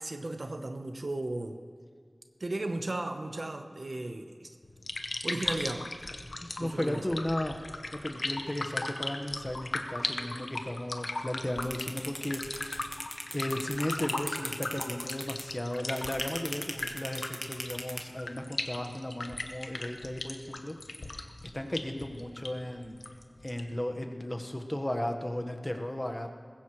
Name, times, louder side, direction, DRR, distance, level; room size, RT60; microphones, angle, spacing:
voice 1, 0.0-1.6 2.4-4.5 5.2-5.9 6.6-7.0, right 2 dB, 75° right, 6 dB, 1.0 m, -35 dB
sound 1, 4.6-23.8, left 2 dB, 90° left, 0.9 m, -38 dB
voice 2, 6.4-7.6 7.9-12.9 13.3-20.8 21.1-21.3 21.5-23.0 23.4-26.3, left 1 dB, 30° left, 5 dB, 1.3 m, -35 dB
sound 2, 11.6-18.0, equal, 10° left, 1.3 m, -37 dB
20.0 x 16.0 x 3.2 m, 2.1 s
wide cardioid pair, 55°, 0 cm